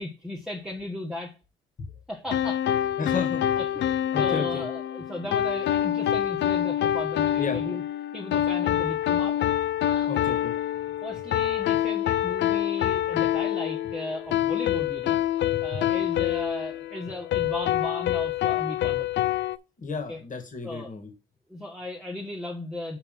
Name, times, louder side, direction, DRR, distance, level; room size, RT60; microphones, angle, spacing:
voice 1, 0.0-1.3 2.1-2.6 3.0-3.3 3.6-7.8 8.1-9.4 9.8-10.1 11.0-15.2 15.6-19.4 20.1-20.2 20.6-20.9 21.5-23.0, left 1 dB, ahead, 0 dB, 1.5 m, -36 dB
sound 1, 2.3-19.6, left 12 dB, 65° left, 0.4 m, -26 dB
voice 2, 3.0-3.6 4.1-4.7 7.4-7.6 10.1-10.5 15.5-15.9 17.4-17.5 19.8-21.1, left 5 dB, 40° left, 5 dB, 2.1 m, -33 dB
5.4 x 4.4 x 5.6 m, 0.31 s
cardioid pair, 90°, 20 cm